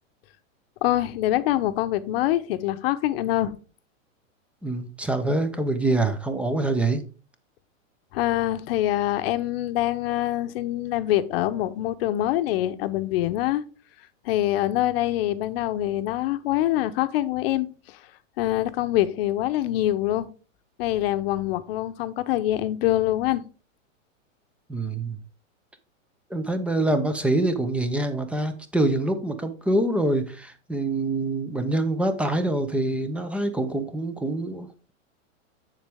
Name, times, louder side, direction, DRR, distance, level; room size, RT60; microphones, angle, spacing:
voice 1, 0.8-3.6 8.1-13.6 14.2-18.0 18.4-20.3 20.8-23.4, left 14 dB, 50° left, 0.9 m, -25 dB
voice 2, 4.6-7.0 24.7-25.2 26.3-34.9, right 2 dB, 5° right, 0.5 m, -25 dB
7.4 x 7.4 x 3.5 m
hypercardioid pair, 135°, 39 cm